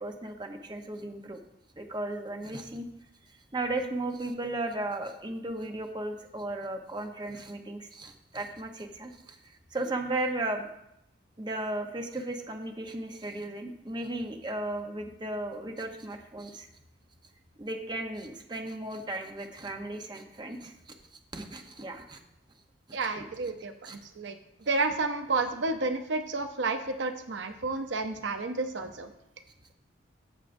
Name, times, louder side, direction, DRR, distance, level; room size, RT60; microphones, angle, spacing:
voice 1, 0.0-1.4 1.8-2.8 3.5-10.7 11.4-16.7 17.6-20.7 21.3-22.2 22.9-23.2 23.8-24.0, right 2 dB, 25° right, 4 dB, 0.8 m, -35 dB
voice 2, 22.9-23.7 24.2-24.4 24.7-29.1, right 3 dB, 65° right, 7 dB, 0.6 m, -30 dB
13.5 x 7.3 x 2.6 m, 0.81 s
head